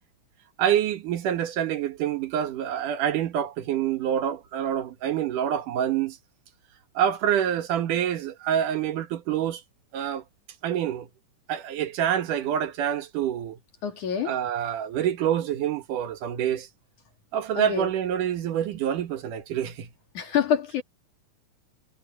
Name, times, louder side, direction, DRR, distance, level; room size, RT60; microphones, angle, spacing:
voice 1, 0.6-6.2 7.0-9.6 9.9-10.2 10.6-11.1 11.5-13.6 14.3-16.7 17.3-19.9, right 10 dB, 75° right, 2.9 m, -26 dB
voice 2, 13.8-14.4 17.5-17.9 20.1-20.8, left 8 dB, 65° left, 4.3 m, -26 dB
omnidirectional pair, 3.7 m